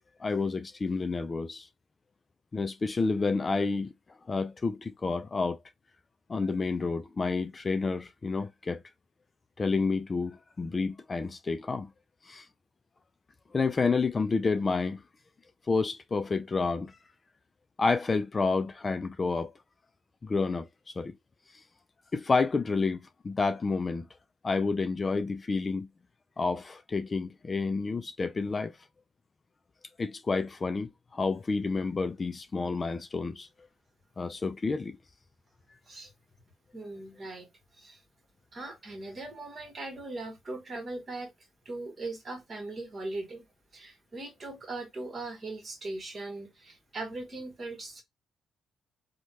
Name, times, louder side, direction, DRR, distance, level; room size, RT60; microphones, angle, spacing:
voice 1, 0.2-1.7 2.5-3.9 4.3-5.6 6.3-8.8 9.6-11.9 12.3-12.5 13.5-15.0 15.7-17.0 17.8-19.5 20.2-20.7 21.0-21.1 22.1-24.1 24.4-25.9 26.4-28.8 30.0-33.5 34.2-35.0, left 4 dB, 30° left, 0.3 m, -29 dB
voice 2, 36.7-38.0 38.5-43.5 43.7-48.0, right 2 dB, 40° right, 1.3 m, -40 dB
3.1 x 2.2 x 2.7 m
cardioid pair, 90°, 0 cm